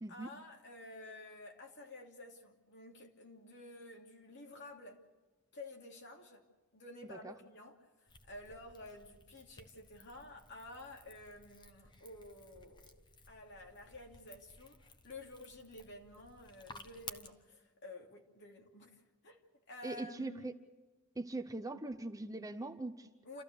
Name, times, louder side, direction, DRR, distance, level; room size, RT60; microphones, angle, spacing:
voice 1, 0.1-5.0 5.5-6.4 6.7-13.0 13.3-19.4 19.7-20.5 23.2-23.4, left 2 dB, 55° left, 1 dB, 2.9 m, -52 dB
sound 1, 8.1-17.3, left 3 dB, 20° left, 1.1 m, -56 dB
voice 2, 19.8-20.5 21.2-23.1, right 2 dB, 15° right, 9 dB, 0.7 m, -41 dB
28.5 x 14.5 x 6.9 m, 1.2 s
head